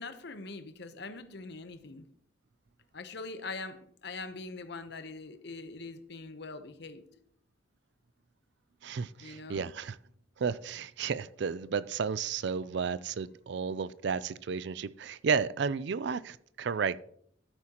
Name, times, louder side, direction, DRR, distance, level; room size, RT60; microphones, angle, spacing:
voice 1, 0.0-2.1 2.9-7.0 9.2-9.7, left 3 dB, 60° left, 0.9 m, -43 dB
voice 2, 8.8-10.0 10.4-17.0, right 6 dB, 60° right, 0.4 m, -32 dB
12.5 x 8.6 x 2.9 m
head